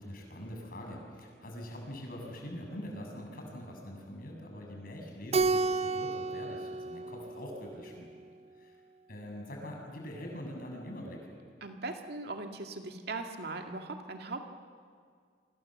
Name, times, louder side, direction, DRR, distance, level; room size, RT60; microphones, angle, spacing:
voice 1, 0.0-8.1 8.6-8.8 9.1-11.3, equal, 55° left, 1 dB, 6.7 m, -43 dB
Keyboard (musical), 5.3-8.0, right 3 dB, 35° right, 0.7 m, -31 dB
voice 2, 11.6-14.5, right 3 dB, 60° right, 4 dB, 2.2 m, -39 dB
27.5 x 25.5 x 7.6 m, 2.1 s
head